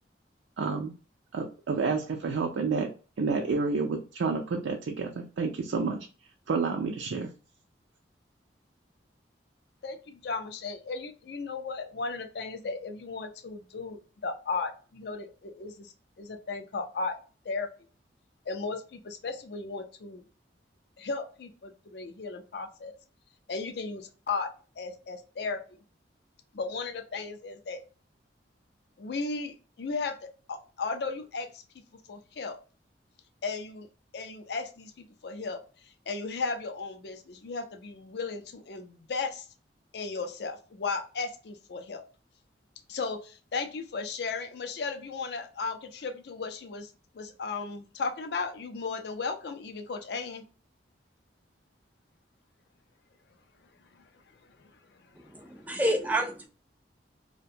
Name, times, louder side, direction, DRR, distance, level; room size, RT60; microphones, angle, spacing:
voice 1, 0.6-0.9 1.3-2.9 3.2-6.0 6.5-7.3, right 4 dB, 80° right, 2 dB, 0.4 m, -29 dB
voice 2, 9.8-17.2 17.4-17.7 18.5-20.2 21.0-22.9 23.5-25.6 26.5-27.8 29.0-31.6 32.1-32.6 33.4-33.9 34.1-39.5 39.9-42.0 42.9-50.4 53.9-54.0 54.6-55.5, left 4 dB, 60° left, 7 dB, 0.4 m, -36 dB
voice 3, 55.2-56.5, right 1 dB, 10° right, 4 dB, 0.3 m, -29 dB
2.5 x 2.1 x 2.7 m, 0.36 s
head